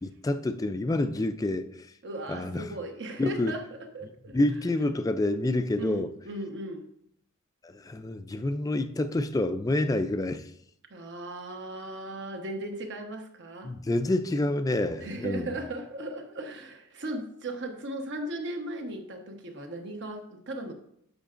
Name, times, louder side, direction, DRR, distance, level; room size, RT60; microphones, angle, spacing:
voice 1, 0.0-1.9 2.3-2.7 3.2-3.5 4.3-6.1 7.6-10.5 13.6-15.5, left 2 dB, 15° left, 0.3 m, -28 dB
voice 2, 2.0-4.4 5.8-6.9 10.9-13.7 15.0-20.7, right 1 dB, 55° right, 1.1 m, -37 dB
10.5 x 6.5 x 2.5 m
head